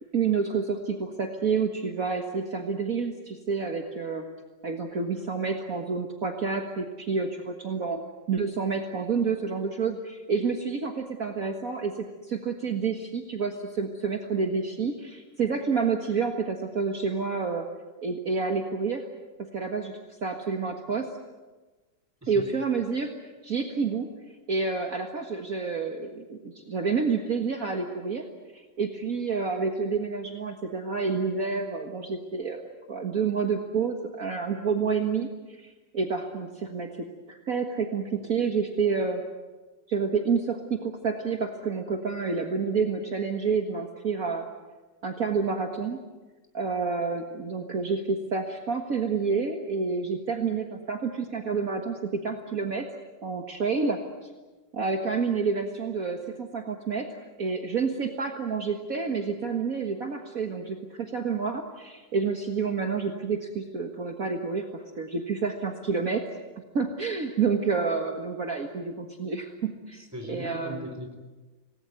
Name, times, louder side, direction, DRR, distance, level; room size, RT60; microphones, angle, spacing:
voice 1, 0.1-4.3 4.6-8.0 8.3-17.7 18.0-19.0 19.4-21.1 22.3-23.1 23.4-24.1 24.5-28.3 28.5-39.2 39.9-44.5 45.0-46.0 46.5-52.9 53.2-54.3 54.7-57.1 57.4-66.3 66.7-70.9, right 5 dB, 50° right, 3 dB, 2.0 m, -29 dB
voice 2, 69.9-71.2, equal, 10° right, 5 dB, 3.6 m, -38 dB
26.5 x 19.5 x 9.3 m, 1.3 s
omnidirectional pair, 2.0 m